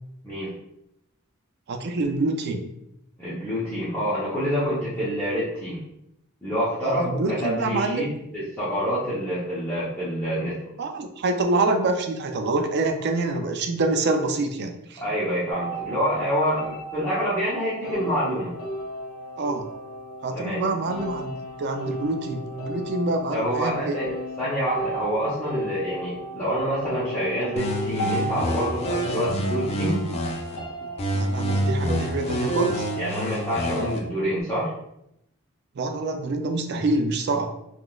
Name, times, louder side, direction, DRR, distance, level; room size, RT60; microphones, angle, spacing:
voice 1, 1.7-2.7 5.0-5.1 6.8-8.1 10.8-15.0 19.4-19.7 20.2-24.0 31.1-32.9 35.8-37.5, right 2 dB, 50° right, 5 dB, 0.4 m, -26 dB
voice 2, 3.2-5.8 6.4-8.1 8.3-10.6 15.0-18.5 20.3-20.6 23.3-30.0 33.0-34.7, equal, 10° left, -12 dB, 0.8 m, -27 dB
sound 1, 15.5-34.0, right 1 dB, 90° left, 0.7 m, -34 dB
sound 2, 27.6-30.6 31.0-34.0, equal, 30° left, 0.4 m, -28 dB
3.6 x 2.4 x 2.3 m, 0.81 s
head